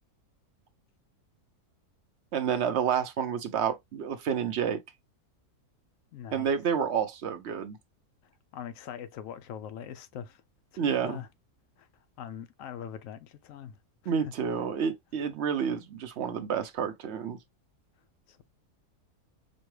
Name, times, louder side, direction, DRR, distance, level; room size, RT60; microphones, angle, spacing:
voice 1, 2.3-4.8 6.3-7.8 10.8-11.2 14.1-17.4, right 7 dB, 60° right, 0.8 m, -29 dB
voice 2, 6.1-6.5 8.5-10.4 10.7-11.3 11.8-11.9 12.2-13.8 18.3-18.4, left 9 dB, 70° left, 0.9 m, -42 dB
5.2 x 2.2 x 3.1 m
omnidirectional pair, 1.6 m